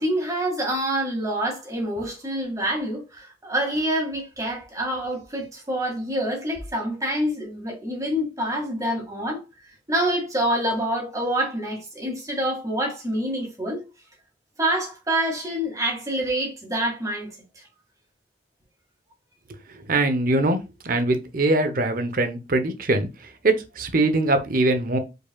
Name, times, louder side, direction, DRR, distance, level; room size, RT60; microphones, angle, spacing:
voice 1, 0.0-9.4 9.9-13.8 14.6-17.4, right 1 dB, 20° right, 1.9 m, -26 dB
voice 2, 19.7-20.6 20.8-23.1 23.4-25.0, right 2 dB, 55° right, 0.8 m, -22 dB
4.8 x 4.7 x 2.3 m
head